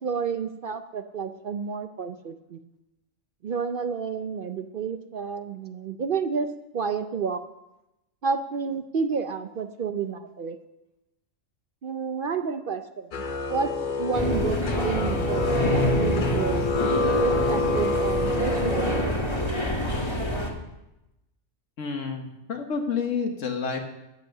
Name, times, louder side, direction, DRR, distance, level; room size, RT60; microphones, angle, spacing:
voice 1, 0.0-2.6 3.4-6.5 6.7-7.4 8.2-10.6 11.8-13.2 13.5-16.7 17.2-19.2, right 5 dB, 55° right, 9 dB, 0.6 m, -30 dB
sound 1, 13.1-19.0, left 2 dB, 45° left, 0.8 m, -27 dB
sound 2, 14.1-20.5, equal, 20° left, 1.7 m, -26 dB
voice 2, 21.8-23.8, left 5 dB, 75° left, 4 dB, 1.6 m, -29 dB
13.0 x 8.2 x 6.5 m, 0.94 s
omnidirectional pair, 1.3 m